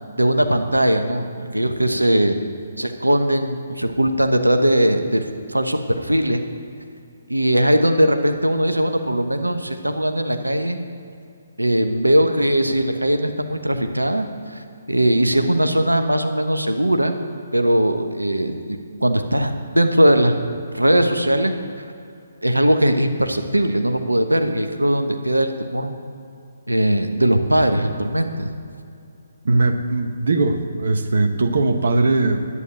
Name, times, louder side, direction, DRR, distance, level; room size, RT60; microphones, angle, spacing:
voice 1, 0.2-2.4 2.8-6.4 7.3-10.8 11.6-17.2 17.5-20.4 20.7-21.6 22.4-25.9 26.7-28.5, right 1 dB, 90° right, 6 dB, 1.1 m, -19 dB
voice 2, 29.4-32.5, right 2 dB, 60° right, 6 dB, 1.0 m, -19 dB
11.5 x 9.3 x 8.8 m, 2.5 s
figure-of-eight pair, 135°, 0 cm